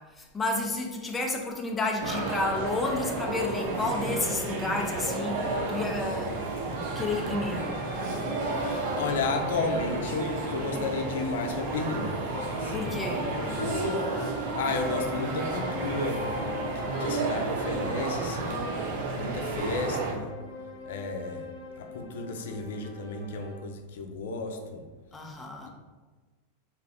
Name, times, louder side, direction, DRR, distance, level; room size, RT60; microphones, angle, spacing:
voice 1, 0.0-6.4 6.7-7.8 12.7-13.3 25.1-25.7, left 2 dB, 10° left, 1 dB, 0.3 m, -31 dB
sound 1, 2.0-20.1, right 2 dB, 55° right, 0.5 m, -32 dB
sound 2, 7.6-13.1 13.3-23.6, left 3 dB, 30° left, 0.9 m, -43 dB
voice 2, 9.0-12.1 12.6-16.3 16.8-18.7 19.2-20.3 20.9-21.5 21.8-24.9 25.6-25.7, left 3 dB, 80° left, 5 dB, 0.5 m, -33 dB
2.5 x 2.5 x 3.4 m, 1.4 s
supercardioid pair, 165°, 0 cm